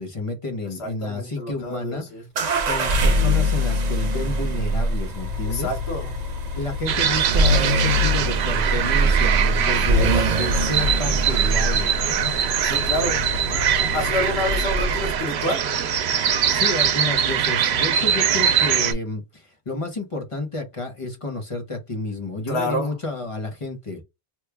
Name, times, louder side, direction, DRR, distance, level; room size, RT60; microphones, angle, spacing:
voice 1, 0.0-2.0 2.7-5.7 6.5-12.3 13.8-14.0 14.3-14.4 16.5-24.0, left 2 dB, 35° left, 0.9 m, -30 dB
voice 2, 0.8-2.3 5.4-6.1 9.6-10.4 12.6-13.2 13.9-15.6 22.5-22.9, left 1 dB, 85° left, 1.2 m, -28 dB
sound 1, 2.4-15.2, equal, 50° right, 0.6 m, -23 dB
sound 2, 6.9-18.9, right 8 dB, 85° right, 0.9 m, -22 dB
3.0 x 2.3 x 3.3 m
omnidirectional pair, 1.1 m